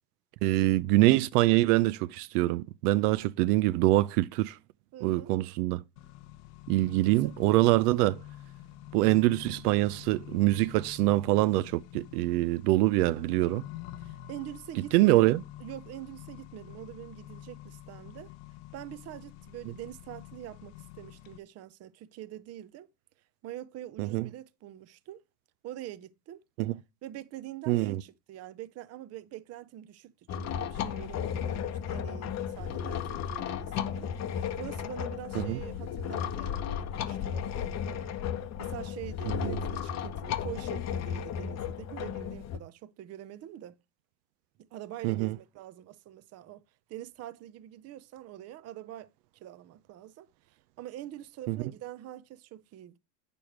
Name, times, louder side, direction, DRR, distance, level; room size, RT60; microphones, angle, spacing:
voice 1, 0.4-4.6 5.0-5.8 6.7-8.2 8.9-13.6 14.9-15.4 24.0-24.3 26.6-26.7 27.7-28.0 35.3-35.6 39.3-39.6 45.0-45.3 51.5-51.6, right 18 dB, 70° right, 0.7 m, -25 dB
voice 2, 4.9-5.3 7.0-7.3 14.0-15.3 15.6-18.3 18.7-22.9 23.4-25.2 25.6-26.4 27.0-38.1 38.6-43.8 44.7-46.6 46.9-53.0, right 13 dB, 30° right, 0.7 m, -45 dB
Accelerating revving vroom, 6.0-21.4, left 13 dB, 70° left, 1.0 m, -47 dB
sound 1, 30.3-42.6, left 8 dB, 35° left, 0.9 m, -34 dB
8.8 x 6.9 x 4.6 m
supercardioid pair, 130°, 48 cm